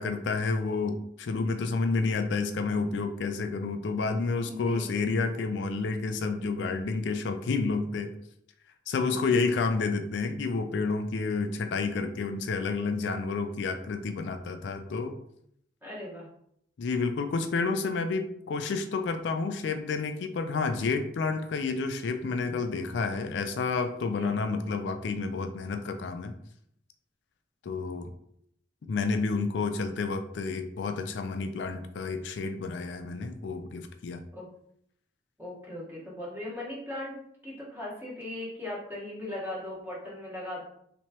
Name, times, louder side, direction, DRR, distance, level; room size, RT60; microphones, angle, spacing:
voice 1, 0.0-8.1 8.9-15.2 16.8-26.3 27.6-28.1 28.9-34.2, left 4 dB, 70° left, 7 dB, 0.3 m, -30 dB
voice 2, 4.5-4.9 9.0-9.4 15.8-16.3 24.1-24.4 34.3-34.5 35.4-37.2 37.4-40.6, left 1 dB, 10° right, -7 dB, 1.3 m, -38 dB
3.3 x 3.0 x 2.9 m, 0.72 s
head